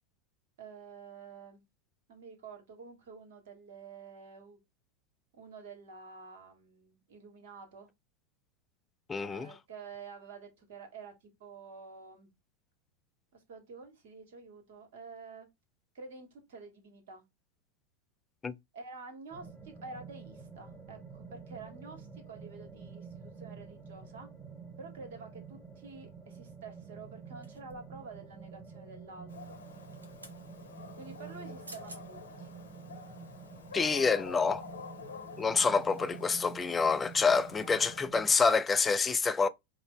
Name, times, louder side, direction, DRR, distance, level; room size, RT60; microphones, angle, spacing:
voice 1, 0.6-1.6 2.1-4.6 5.3-7.9 9.2-12.3 13.3-15.5 15.9-17.2 18.7-24.3 24.8-29.6 31.0-32.5 37.6-37.8, right 4 dB, 55° right, 1.3 m, -49 dB
voice 2, 9.1-9.5 18.4-18.5 33.7-34.6 35.4-39.5, left 4 dB, 15° left, 0.3 m, -27 dB
sound 1, 19.3-38.3, right 5 dB, 15° right, 0.9 m, -49 dB
sound 2, 27.4-28.0 29.7-30.4 31.4-31.5 31.6-32.0 32.6-32.7, right 1 dB, 80° right, 0.8 m, -51 dB
Dog, 29.3-38.0, left 6 dB, 70° left, 0.9 m, -48 dB
4.8 x 2.1 x 3.4 m
figure-of-eight pair, 90°, 0 cm